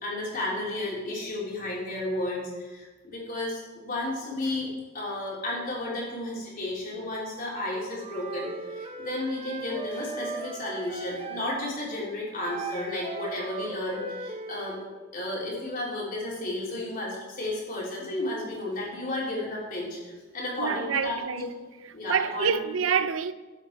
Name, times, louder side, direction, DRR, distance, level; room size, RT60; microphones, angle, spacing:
voice 1, 0.0-14.8 15.1-21.5 21.9-22.6, left 1 dB, 45° left, 3.5 m, -33 dB
Wind instrument woodwind instrument, 7.9-11.5 12.4-14.9, right 3 dB, 25° right, 0.9 m, -38 dB
voice 2, 20.6-21.5 22.1-23.3, right 7 dB, 75° right, 0.5 m, -27 dB
12.5 x 8.4 x 4.6 m
head